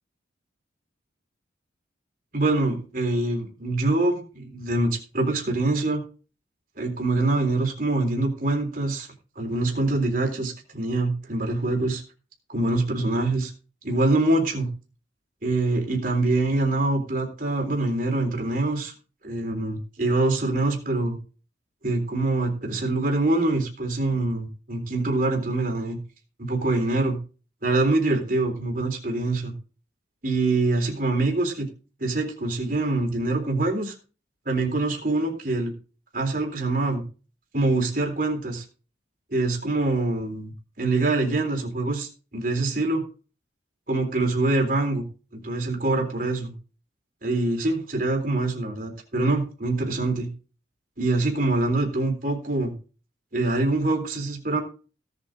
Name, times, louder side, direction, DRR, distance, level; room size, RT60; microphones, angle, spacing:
voice 1, 2.3-6.0 6.8-9.1 9.4-12.0 12.5-13.5 13.8-14.7 15.4-18.9 19.2-21.2 21.8-26.0 26.4-27.2 27.6-29.5 30.2-31.7 32.0-33.9 34.5-35.7 36.1-37.0 37.5-38.6 39.3-40.5 40.8-43.0 43.9-45.0 45.4-46.5 47.2-50.3 51.0-52.7 53.3-54.6, right 2 dB, 45° right, 2 dB, 3.7 m, -24 dB
17.0 x 8.2 x 3.8 m, 0.36 s
head